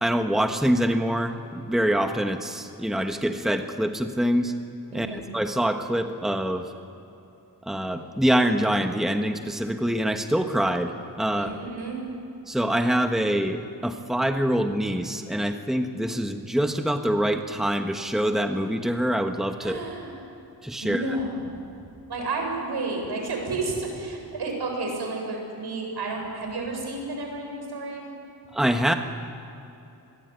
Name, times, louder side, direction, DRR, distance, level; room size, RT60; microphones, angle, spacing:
voice 1, 0.0-4.5 4.9-6.7 7.6-10.9 11.2-11.6 12.5-19.8 20.6-21.2 28.5-28.9, equal, ahead, 5 dB, 1.4 m, -25 dB
voice 2, 4.9-5.2 11.4-12.0 19.6-20.1 20.8-21.4 22.1-28.0, right 3 dB, 75° right, 2 dB, 7.7 m, -31 dB
28.0 x 22.0 x 9.5 m, 2.9 s
wide cardioid pair, 125°, 39 cm